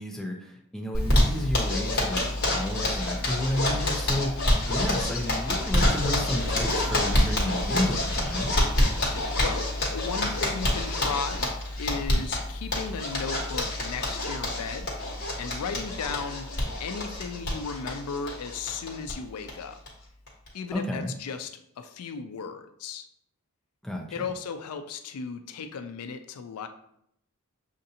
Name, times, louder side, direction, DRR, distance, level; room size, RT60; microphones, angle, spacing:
voice 1, 0.0-8.5 20.7-21.1 23.8-24.3, left 1 dB, ahead, 0 dB, 0.5 m, -32 dB
Zipper (clothing), 0.9-19.1 19.4-19.5 19.9-20.0 20.3-20.7, left 1 dB, 50° left, 1.2 m, -27 dB
voice 2, 9.0-11.5 11.8-14.9 15.4-16.5 16.8-19.8 20.5-21.5 21.8-23.1 24.1-26.7, left 5 dB, 80° left, 8 dB, 0.4 m, -35 dB
6.5 x 2.5 x 2.7 m, 0.72 s
head